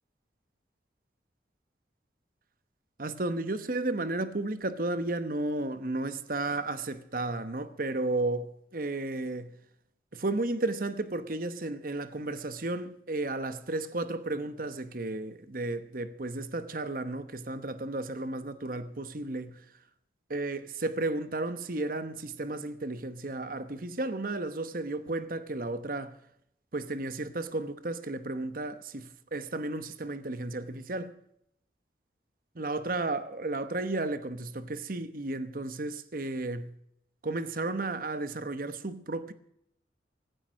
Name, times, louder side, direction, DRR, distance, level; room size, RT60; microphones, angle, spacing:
voice 1, 3.0-9.5 10.1-19.6 20.3-26.2 26.7-31.1 32.5-36.8 37.2-39.3, right 2 dB, 50° right, 1.0 m, -33 dB
15.5 x 14.0 x 6.3 m
head